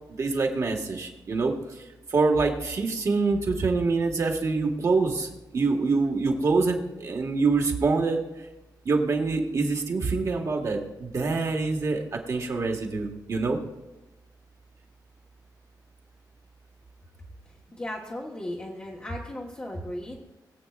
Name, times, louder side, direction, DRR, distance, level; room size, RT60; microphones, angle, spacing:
voice 1, 0.2-1.5 2.1-8.2 8.8-13.6, right 3 dB, 45° right, 1 dB, 1.6 m, -25 dB
voice 2, 17.4-20.2, left 1 dB, 20° left, -2 dB, 1.2 m, -36 dB
21.5 x 8.0 x 2.4 m, 1.0 s
wide cardioid pair, 170°, 7 cm